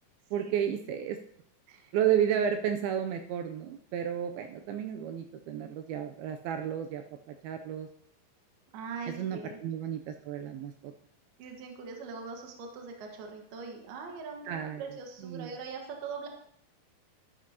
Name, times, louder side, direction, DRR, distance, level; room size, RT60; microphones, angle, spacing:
voice 1, 0.3-1.2 1.9-7.9 9.2-10.9 14.5-14.8 15.2-15.5, right 9 dB, 90° right, 6 dB, 2.1 m, -32 dB
voice 2, 8.7-9.6 11.4-16.3, right 5 dB, 65° right, 2 dB, 3.2 m, -42 dB
12.5 x 12.5 x 2.8 m, 0.67 s
omnidirectional pair, 5.1 m